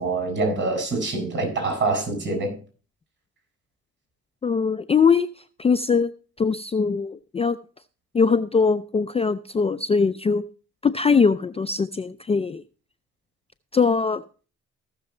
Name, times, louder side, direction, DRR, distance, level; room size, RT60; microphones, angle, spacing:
voice 1, 0.0-2.6, right 3 dB, 40° right, 6.6 m, -25 dB
voice 2, 4.4-5.3 5.6-6.1 6.4-7.6 8.1-10.4 10.8-12.6 13.7-14.2, left 5 dB, 20° left, 0.4 m, -21 dB
15.0 x 6.8 x 4.3 m
cardioid pair, 90°, 30 cm